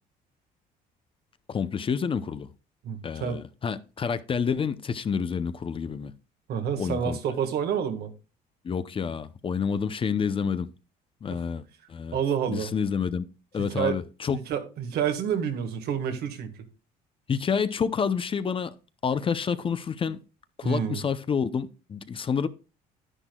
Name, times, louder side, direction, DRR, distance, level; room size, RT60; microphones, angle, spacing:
voice 1, 1.5-2.5 3.0-6.1 6.8-7.2 8.6-10.7 11.2-12.2 12.5-13.2 13.5-14.4 17.3-18.7 19.0-20.2 20.6-22.5, left 6 dB, 30° left, 0.6 m, -28 dB
voice 2, 2.8-3.4 6.5-8.1 12.1-12.7 13.7-14.0 14.3-16.6 20.6-21.0, right 8 dB, 70° right, 1.6 m, -28 dB
10.5 x 10.0 x 2.3 m
cardioid pair, 110°, 17 cm